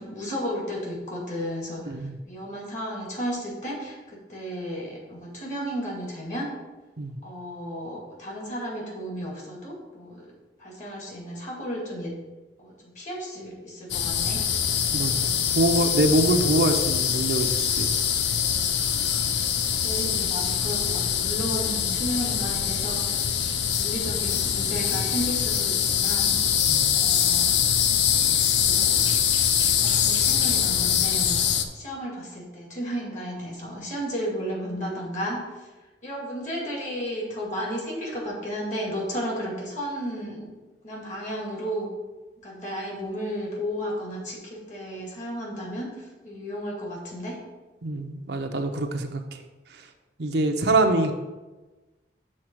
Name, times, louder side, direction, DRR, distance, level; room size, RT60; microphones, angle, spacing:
voice 1, 0.0-1.9 2.2-6.5 7.2-10.3 10.6-12.1 12.6-14.4 19.8-23.2 23.6-26.4 26.9-27.6 28.6-29.1 29.8-35.7 36.0-40.4 40.8-41.9 42.4-47.4, equal, 45° left, -2 dB, 2.2 m, -33 dB
voice 2, 1.9-2.2 7.0-7.2 14.9-18.0 26.7-26.9 47.8-49.2 50.2-51.1, right 2 dB, 65° right, 5 dB, 0.7 m, -24 dB
sound 1, 13.9-31.6, left 8 dB, 80° left, 0.5 m, -24 dB
6.5 x 3.9 x 6.0 m, 1.2 s
head